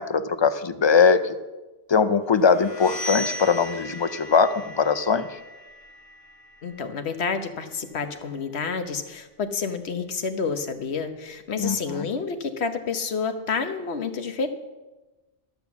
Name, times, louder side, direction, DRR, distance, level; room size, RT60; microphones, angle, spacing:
voice 1, 0.0-1.4 1.9-5.3 11.6-12.0, left 5 dB, 45° left, 12 dB, 0.3 m, -21 dB
sound 1, 2.4-8.1, left 1 dB, 30° left, 1.4 m, -38 dB
voice 2, 6.6-14.5, left 5 dB, 80° left, 8 dB, 1.2 m, -29 dB
12.5 x 7.0 x 7.1 m, 1.1 s
omnidirectional pair, 1.1 m